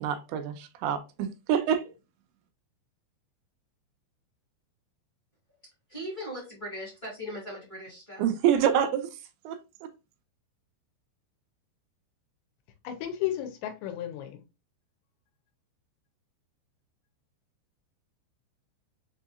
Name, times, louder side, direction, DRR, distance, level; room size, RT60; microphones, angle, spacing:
voice 1, 0.0-1.9 8.2-9.1 9.4-9.9, right 9 dB, 90° right, 2.9 m, -27 dB
voice 2, 5.9-8.2, equal, 20° left, 1.1 m, -39 dB
voice 3, 12.8-14.4, left 12 dB, 85° left, 3.0 m, -33 dB
6.8 x 2.8 x 2.4 m
omnidirectional pair, 5.2 m